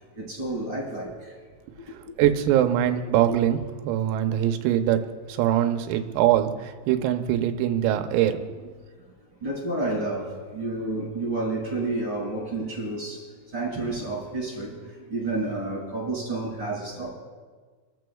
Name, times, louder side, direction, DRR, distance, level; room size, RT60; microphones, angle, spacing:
voice 1, 0.1-1.3 3.3-3.4 9.4-13.2 13.5-14.8 15.1-17.1, right 2 dB, 25° right, -4 dB, 6.1 m, -30 dB
voice 2, 2.2-5.0 5.3-8.4, right 11 dB, 85° right, 7 dB, 3.4 m, -23 dB
27.5 x 14.0 x 2.3 m, 1.5 s
omnidirectional pair, 6.0 m